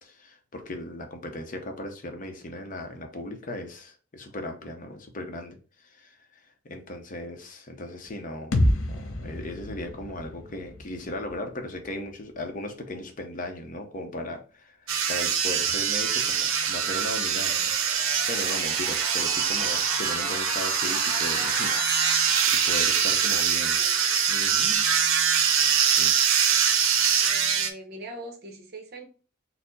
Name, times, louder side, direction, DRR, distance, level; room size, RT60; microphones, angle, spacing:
voice 1, 0.0-8.6 8.9-23.8 24.3-24.9 25.8-26.2, left 1 dB, 40° left, 5 dB, 0.6 m, -37 dB
sound 1, 8.5-12.4, left 1 dB, 85° left, 0.6 m, -29 dB
sound 2, 14.9-27.7, right 7 dB, 90° right, 0.5 m, -24 dB
sound 3, 15.8-23.5, equal, 20° right, 1.2 m, -36 dB
voice 2, 23.1-24.0 27.2-29.0, right 2 dB, 50° right, 2 dB, 0.8 m, -43 dB
4.3 x 2.0 x 3.9 m, 0.37 s
head